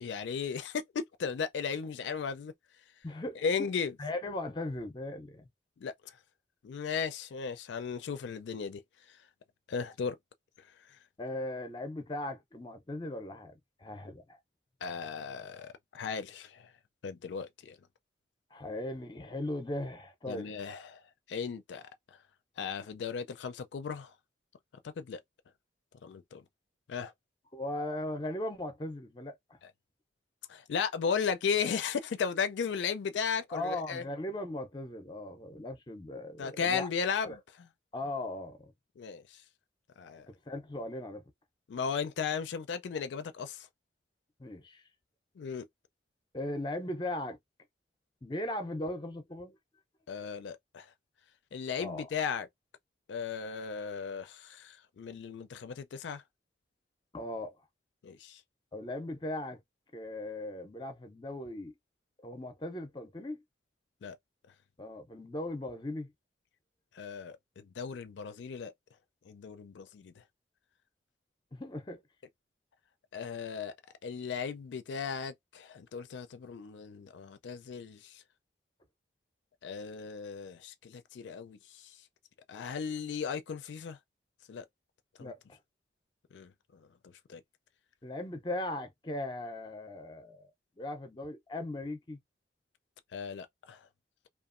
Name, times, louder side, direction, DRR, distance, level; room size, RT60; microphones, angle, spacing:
voice 1, 0.0-2.5 3.4-3.9 5.8-6.1 6.6-8.8 9.7-10.2 14.8-16.7 17.0-17.8 20.3-21.0 21.3-21.8 22.6-24.1 24.8-25.2 26.0-26.4 26.9-27.1 30.5-34.0 36.4-37.7 39.0-39.4 40.0-40.3 41.7-43.7 45.4-45.7 50.1-50.9 51.5-52.5 53.1-56.2 58.0-58.4 64.0-64.2 66.9-68.7 69.3-70.1 73.1-73.7 74.0-78.2 79.6-82.0 82.5-84.0 84.5-84.7 85.2-85.3 86.3-86.8 87.3-87.4 93.1-93.8, left 6 dB, 85° left, 0.4 m, -36 dB
voice 2, 3.0-3.7 4.0-5.5 11.2-13.5 13.8-14.4 18.5-20.7 27.5-29.6 33.5-36.9 37.2-37.4 37.9-38.7 40.5-41.2 44.4-44.8 46.3-47.4 48.2-49.6 50.2-50.3 51.8-52.1 57.1-57.6 58.7-59.6 59.9-61.7 62.2-63.4 64.8-66.1 71.5-72.0 85.2-85.6 88.0-90.5 90.8-92.2, left 1 dB, 25° left, 0.5 m, -38 dB
2.8 x 2.3 x 2.4 m
head